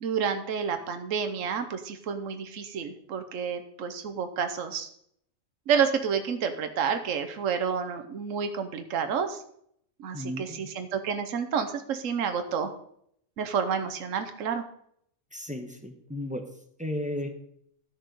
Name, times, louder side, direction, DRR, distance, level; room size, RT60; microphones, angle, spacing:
voice 1, 0.0-4.9 5.7-9.4 10.0-12.7 13.4-14.6, right 6 dB, 70° right, 8 dB, 1.3 m, -29 dB
voice 2, 10.1-10.6 15.3-16.4 16.8-17.3, left 1 dB, 5° right, 6 dB, 0.8 m, -34 dB
12.0 x 6.5 x 5.3 m, 0.69 s
omnidirectional pair, 1.4 m